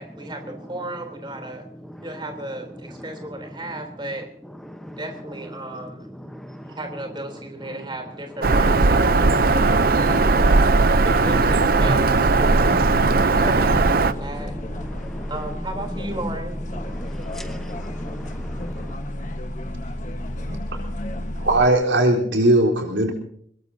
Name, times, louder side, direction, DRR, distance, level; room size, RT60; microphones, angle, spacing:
voice 1, 0.0-1.7 2.0-4.3 5.0-6.1 6.7-10.8 11.0-12.8 13.4-14.6 15.3-16.6, right 1 dB, 25° right, 4 dB, 3.5 m, -35 dB
voice 2, 6.3-6.7 13.1-13.4 15.0-15.3 17.0-18.9, equal, ahead, 5 dB, 1.0 m, -38 dB
Bird vocalization bird call bird song, 8.4-14.1, right 3 dB, 50° right, 0.7 m, -18 dB
sound 1, 9.3-21.7, left 1 dB, 45° left, 1.4 m, -31 dB
voice 3, 20.4-20.8 21.4-23.1, right 1 dB, 85° right, 1 dB, 4.0 m, -19 dB
24.5 x 21.0 x 2.8 m, 0.64 s
head